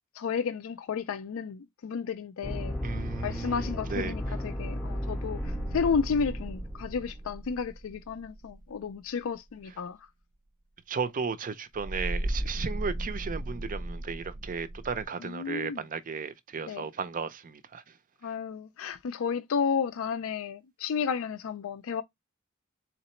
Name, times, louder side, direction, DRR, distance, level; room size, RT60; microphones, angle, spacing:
voice 1, 0.1-2.7 3.2-10.1 15.2-15.8 16.6-16.9 18.2-22.0, left 6 dB, 65° left, 0.4 m, -32 dB
sound 1, 2.4-7.3, left 1 dB, 5° left, 0.6 m, -35 dB
voice 2, 2.8-4.1 10.9-17.8, right 5 dB, 40° right, 0.5 m, -35 dB
sound 2, 5.4-9.0 11.7-15.0, right 1 dB, 85° right, 1.0 m, -36 dB
3.9 x 2.9 x 4.3 m
head